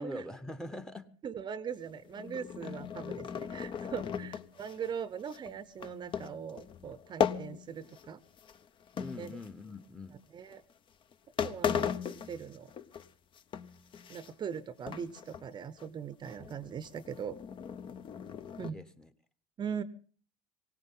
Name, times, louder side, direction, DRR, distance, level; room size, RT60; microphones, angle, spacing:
voice 1, 0.0-1.1 2.6-2.7 4.0-4.3 8.9-10.2 18.6-19.1, left 1 dB, 5° left, 12 dB, 1.0 m, -43 dB
voice 2, 1.2-8.2 9.2-9.3 10.3-10.6 11.4-11.9 12.3-12.7 14.1-17.4 18.6-18.8 19.6-19.8, right 7 dB, 30° right, 15 dB, 0.8 m, -40 dB
sound 1, 2.0-8.1 8.4-9.9 10.5-10.7 11.1-11.2 11.4-13.1 13.4-14.6 14.9-15.5 15.8-15.9 16.2-18.7, left 8 dB, 35° left, 0.8 m, -37 dB
20.0 x 17.5 x 3.8 m, 0.41 s
supercardioid pair, 115°, 15 cm